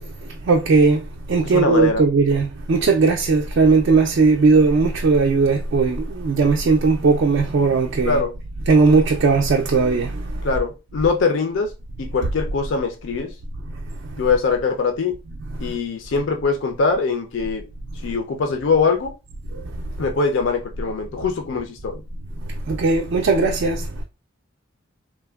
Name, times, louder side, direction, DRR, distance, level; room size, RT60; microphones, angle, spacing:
voice 1, 0.0-8.2 8.7-10.6 15.5-15.8 19.5-19.8 22.5-24.0, right 4 dB, 55° right, 0.3 m, -18 dB
voice 2, 1.4-2.1 8.0-8.3 10.4-11.7 12.0-13.3 14.2-15.1 15.6-17.6 18.0-19.1 20.0-21.9, left 4 dB, 65° left, 0.4 m, -22 dB
3.3 x 2.1 x 2.2 m
head